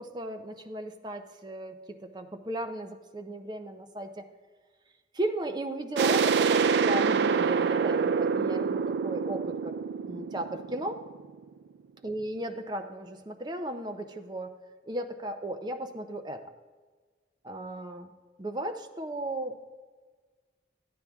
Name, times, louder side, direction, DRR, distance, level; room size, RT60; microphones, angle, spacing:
voice 1, 0.0-4.3 5.1-9.7 10.1-11.0 12.0-14.5 14.9-16.4 17.4-18.1 18.4-19.6, right 1 dB, 25° right, 6 dB, 0.6 m, -35 dB
sound 1, 6.0-11.4, right 6 dB, 70° right, 0.3 m, -26 dB
12.0 x 9.4 x 3.5 m, 1.4 s
head